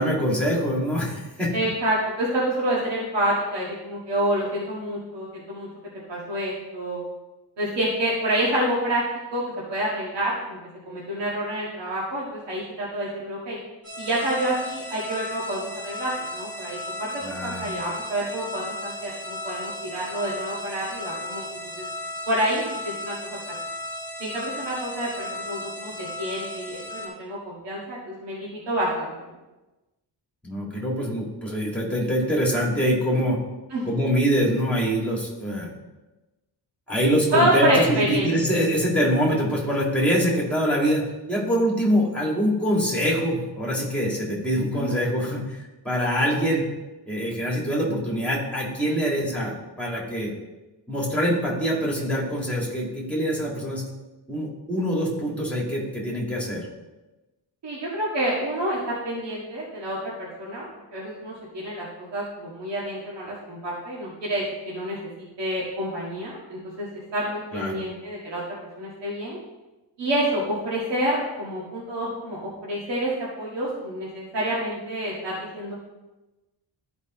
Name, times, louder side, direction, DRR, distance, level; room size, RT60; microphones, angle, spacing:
voice 1, 0.0-1.5 17.2-17.7 30.4-33.4 33.8-35.7 36.9-41.0 41.3-46.7 47.1-50.3 50.9-53.8 54.3-56.7 67.5-67.8, equal, 5° left, -3 dB, 2.1 m, -24 dB
voice 2, 1.5-5.7 6.1-7.0 7.6-9.0 9.3-9.4 9.7-10.6 10.9-13.6 14.0-21.5 22.3-23.4 24.2-29.3 33.7-33.9 37.3-38.3 44.7-44.9 57.6-60.7 60.9-61.9 62.1-65.0 65.4-66.9 67.1-68.4 68.8-69.4 70.0-75.7, right 1 dB, 80° right, -6 dB, 1.9 m, -28 dB
sound 1, 13.8-27.1, left 1 dB, 45° right, 2.5 m, -35 dB
13.0 x 5.1 x 3.1 m, 1.1 s
wide cardioid pair, 155°, 42 cm